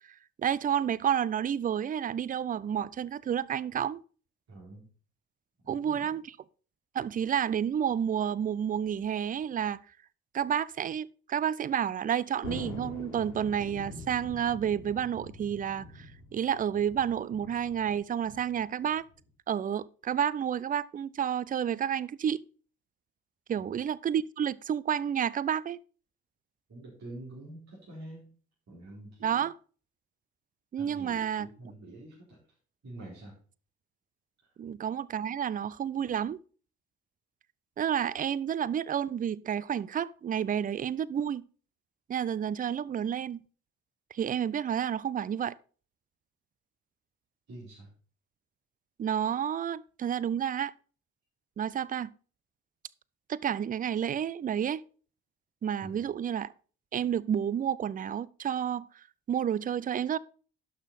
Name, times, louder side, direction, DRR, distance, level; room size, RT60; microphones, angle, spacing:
voice 1, 0.4-4.0 5.7-6.2 6.9-9.8 10.3-19.0 19.5-22.4 23.5-25.8 29.2-29.5 30.7-31.5 34.6-36.4 37.8-41.4 42.1-43.4 44.1-45.5 49.0-50.7 51.6-52.1 53.3-54.8 55.6-56.5 56.9-58.9 59.3-60.2, right 9 dB, 20° right, 0.4 m, -30 dB
voice 2, 4.5-4.9 5.6-6.2 23.6-23.8 26.7-28.3 28.7-29.5 30.8-32.4 32.8-33.3 34.4-34.5 47.5-47.9 55.8-56.1, right 2 dB, 40° right, 4.3 m, -47 dB
Thunder, 12.4-19.3, left 3 dB, 80° left, 1.6 m, -45 dB
11.5 x 6.5 x 4.1 m
figure-of-eight pair, 45°, 41 cm